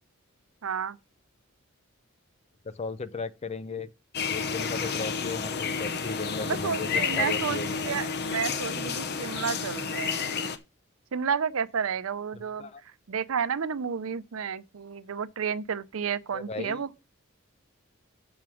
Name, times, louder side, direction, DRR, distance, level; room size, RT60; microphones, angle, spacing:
voice 1, 0.6-1.0 6.4-10.3 11.1-16.9, right 7 dB, 80° right, 0.6 m, -31 dB
voice 2, 2.7-3.9 4.3-7.8 12.6-12.8 16.3-16.8, left 4 dB, 30° left, 0.4 m, -36 dB
sound 1, 4.1-10.6, left 5 dB, 55° left, 0.8 m, -31 dB
7.2 x 5.9 x 6.2 m
head